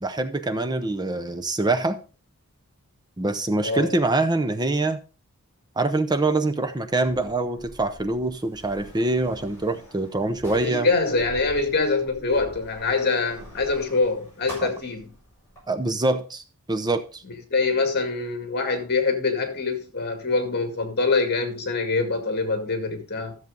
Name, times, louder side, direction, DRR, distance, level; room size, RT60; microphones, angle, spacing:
voice 1, 0.0-2.0 3.2-5.0 5.8-10.9 14.6-14.7 15.7-16.4 16.7-17.2, right 2 dB, 20° right, 0.7 m, -24 dB
Sliding door, 7.0-15.6, equal, 10° left, 7.1 m, -45 dB
voice 2, 10.5-15.1 17.5-23.4, left 3 dB, 45° left, 2.2 m, -24 dB
13.5 x 7.2 x 3.8 m
head